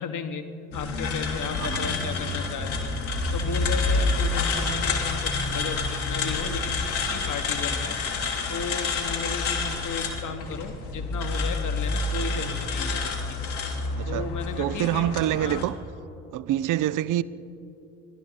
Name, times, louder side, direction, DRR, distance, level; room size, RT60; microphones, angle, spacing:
voice 1, 0.0-2.9 3.3-8.0 8.5-13.4 14.1-15.1 15.4-15.7, left 5 dB, 45° left, 1.4 m, -35 dB
sound 1, 0.7-15.6, left 3 dB, 70° left, 2.1 m, -28 dB
voice 2, 14.0-14.3 14.6-15.8 16.3-17.2, right 13 dB, 50° right, 0.6 m, -26 dB
28.5 x 11.5 x 4.1 m
hypercardioid pair, 50°, 41 cm